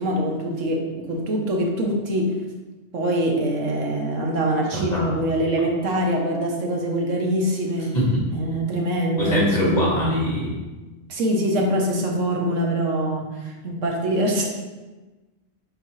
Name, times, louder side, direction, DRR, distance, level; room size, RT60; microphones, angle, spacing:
voice 1, 0.0-2.3 2.9-7.9 8.3-9.9 11.1-14.4, right 1 dB, 85° right, 1 dB, 1.4 m, -24 dB
voice 2, 4.7-5.1 7.9-8.2 9.2-10.5, left 1 dB, 35° left, -5 dB, 1.9 m, -22 dB
7.1 x 4.7 x 3.1 m, 1.2 s
omnidirectional pair, 1.3 m